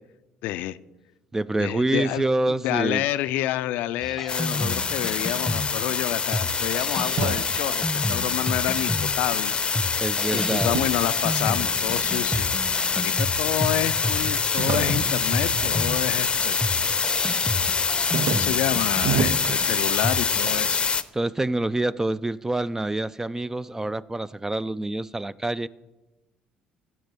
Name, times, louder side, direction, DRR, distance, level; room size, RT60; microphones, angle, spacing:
voice 1, 0.4-0.8 1.6-9.5 10.3-12.5 12.9-16.6 18.3-20.8, left 14 dB, 75° left, 0.4 m, -29 dB
voice 2, 1.3-3.0 10.0-10.7 21.1-25.7, right 2 dB, 15° right, 0.4 m, -26 dB
sound 1, 4.0-20.6, left 1 dB, ahead, 1.1 m, -32 dB
sound 2, 4.3-21.0, left 5 dB, 35° left, 0.6 m, -25 dB
sound 3, 6.7-9.2 9.5-12.0 12.6-13.3 13.6-13.7 14.0-16.6 16.9-17.4 17.7-20.3, right 8 dB, 65° right, 0.6 m, -33 dB
15.5 x 5.8 x 6.0 m
hypercardioid pair, 60°, 3 cm